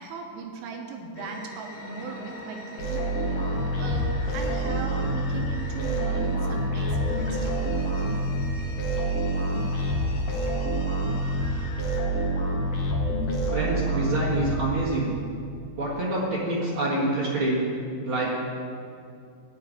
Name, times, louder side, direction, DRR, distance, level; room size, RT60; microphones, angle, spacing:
voice 1, 0.0-7.8, right 4 dB, 90° right, 2 dB, 3.8 m, -38 dB
sound 1, 1.2-13.7, left 2 dB, 85° left, 4.1 m, -43 dB
sound 2, 2.8-15.0, right 1 dB, 70° left, 1.3 m, -27 dB
voice 2, 13.5-15.2 15.8-17.6 18.0-18.3, right 2 dB, 70° right, -7 dB, 1.2 m, -26 dB
15.0 x 5.3 x 9.7 m, 2.4 s
omnidirectional pair, 5.6 m